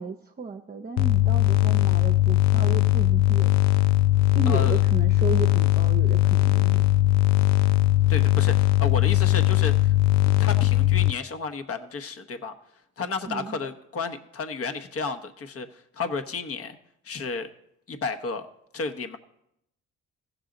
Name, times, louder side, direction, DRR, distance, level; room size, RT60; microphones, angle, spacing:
voice 1, 0.0-3.6 4.3-6.8 13.3-13.6, right 4 dB, 30° right, 4 dB, 0.7 m, -34 dB
sound 1, 1.0-11.1, left 16 dB, 65° left, 0.5 m, -20 dB
voice 2, 4.5-4.8 8.1-9.9 10.2-12.5 13.0-16.8 17.0-17.5 17.9-18.5 18.7-19.2, left 4 dB, 50° left, 7 dB, 1.1 m, -32 dB
15.5 x 6.6 x 3.9 m, 0.78 s
cardioid pair, 90°, 30 cm